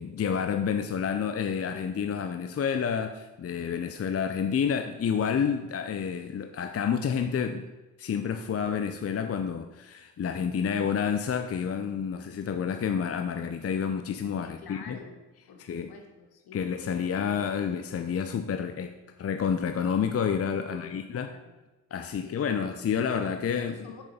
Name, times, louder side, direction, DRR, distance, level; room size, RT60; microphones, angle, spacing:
voice 1, 0.0-7.7 8.0-15.0 15.6-15.9 16.5-18.9 19.2-21.3 21.9-23.8, left 7 dB, 35° left, 7 dB, 0.7 m, -29 dB
voice 2, 14.4-15.2 15.5-17.6 20.6-21.5 22.2-22.7 23.6-24.0, left 5 dB, 60° left, 4 dB, 1.7 m, -49 dB
6.7 x 6.3 x 5.1 m, 1.1 s
hypercardioid pair, 55°, 41 cm